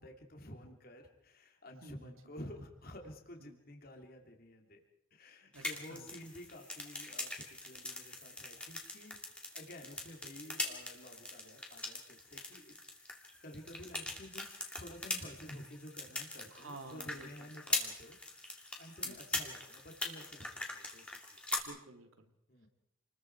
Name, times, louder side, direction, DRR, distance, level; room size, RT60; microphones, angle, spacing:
voice 1, 0.0-4.8 5.1-13.1 13.4-18.2 18.8-21.4 22.5-22.7, left 1 dB, 45° left, 3 dB, 2.9 m, -51 dB
voice 2, 1.8-2.1 3.4-3.6 5.5-6.1 16.5-17.5 19.0-19.2 21.6-22.3, right 2 dB, 85° right, 5 dB, 2.8 m, -52 dB
sound 1, 5.5-21.6, left 2 dB, 5° left, 2.5 m, -42 dB
28.5 x 21.0 x 4.7 m, 0.73 s
head